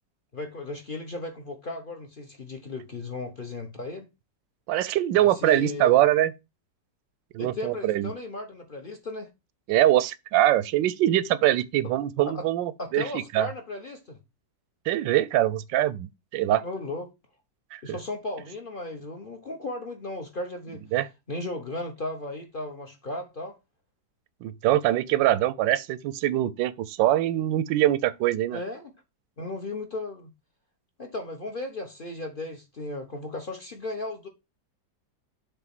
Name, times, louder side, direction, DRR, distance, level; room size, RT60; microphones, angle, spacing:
voice 1, 0.3-4.1 5.2-5.9 7.4-9.3 12.3-12.4 12.8-14.2 16.6-17.1 17.8-20.8 21.3-23.6 28.5-28.9 29.4-30.3 31.0-34.3, left 2 dB, 35° left, 1.0 m, -35 dB
voice 2, 4.7-6.3 7.3-8.1 9.7-13.5 14.9-16.6 17.7-18.0 20.9-21.1 24.4-28.6, right 13 dB, 85° right, 1.3 m, -23 dB
7.0 x 3.3 x 5.8 m
omnidirectional pair, 2.0 m